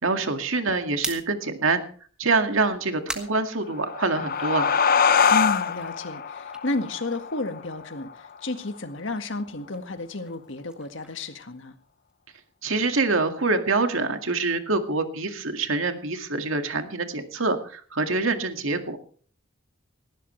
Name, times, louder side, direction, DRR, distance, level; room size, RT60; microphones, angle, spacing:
voice 1, 0.0-1.8 2.2-4.7 12.6-19.0, right 3 dB, 80° right, 6 dB, 2.1 m, -25 dB
sound 1, 1.0-4.4 4.7-7.7 8.0-12.1, right 1 dB, 5° right, 1.9 m, -42 dB
sound 2, 3.6-8.8, left 6 dB, 45° left, 0.7 m, -24 dB
voice 2, 5.3-11.7, left 2 dB, 65° left, 8 dB, 1.8 m, -32 dB
19.0 x 16.0 x 3.3 m, 0.43 s
head